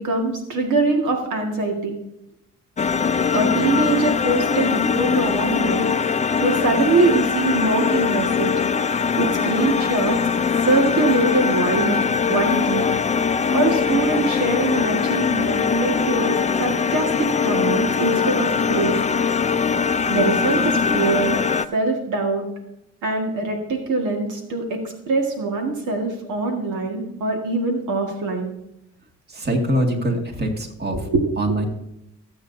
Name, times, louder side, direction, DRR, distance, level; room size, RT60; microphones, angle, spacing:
voice 1, 0.0-1.9 3.3-5.9 6.4-8.8 9.2-10.2 10.6-12.0 12.3-12.9 13.5-19.0 20.1-21.4 21.7-22.5 23.0-28.5 30.9-31.3, right 3 dB, 80° right, 2 dB, 1.9 m, -23 dB
sound 1, 2.8-21.7, left 6 dB, 25° left, 0.5 m, -21 dB
voice 2, 29.3-31.1 31.4-31.7, right 1 dB, 35° right, 1 dB, 2.2 m, -23 dB
18.0 x 7.9 x 2.7 m, 0.85 s
cardioid pair, 90°, 30 cm